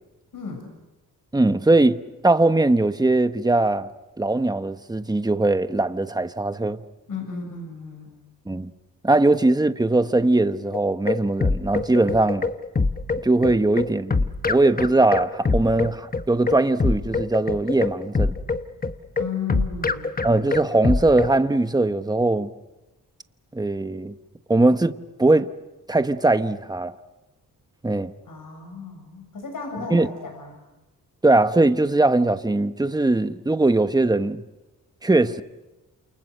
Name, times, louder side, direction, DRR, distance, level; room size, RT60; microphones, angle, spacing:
voice 1, 0.3-0.7 7.1-8.1 19.2-20.1 28.3-30.6, left 5 dB, 70° left, 7.1 m, -34 dB
voice 2, 1.3-3.9 4.2-6.8 8.5-8.7 9.0-12.5 13.2-14.2 14.4-18.4 20.2-22.5 23.5-24.1 24.5-24.9 25.2-25.5 25.9-26.9 27.8-28.1 29.9-30.1 31.2-34.4 35.0-35.4, right 2 dB, 10° right, 1.1 m, -20 dB
sound 1, 10.7-21.4, left 3 dB, 25° left, 1.1 m, -24 dB
29.0 x 28.5 x 6.7 m
wide cardioid pair, 105°, 34 cm